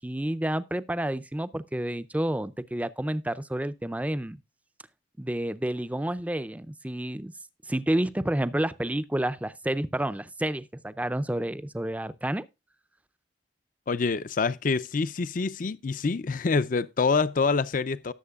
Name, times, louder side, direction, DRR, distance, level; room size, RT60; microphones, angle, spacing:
voice 1, 0.0-4.4 5.2-7.3 7.7-12.5, right 1 dB, 10° right, 0.5 m, -29 dB
voice 2, 13.9-18.1, left 4 dB, 50° left, 0.5 m, -26 dB
18.0 x 7.3 x 2.3 m
head